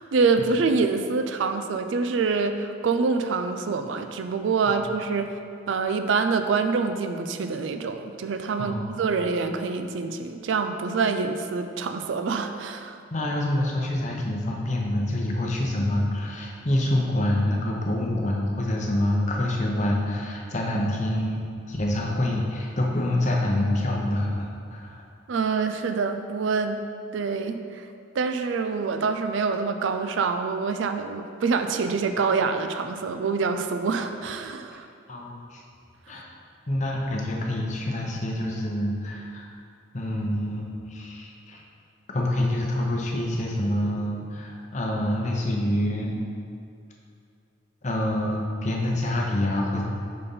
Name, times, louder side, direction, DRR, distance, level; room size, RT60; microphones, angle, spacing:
voice 1, 0.0-5.4 5.7-13.0 25.3-26.8 27.1-27.9 28.1-34.9, right 4 dB, 75° right, 7 dB, 0.4 m, -26 dB
voice 2, 8.6-8.9 13.1-25.0 35.1-35.6 36.1-36.3 36.7-39.5 39.9-41.6 42.1-46.2 47.8-49.8, left 1 dB, 35° left, -1 dB, 0.8 m, -26 dB
5.3 x 4.2 x 5.3 m, 2.4 s
head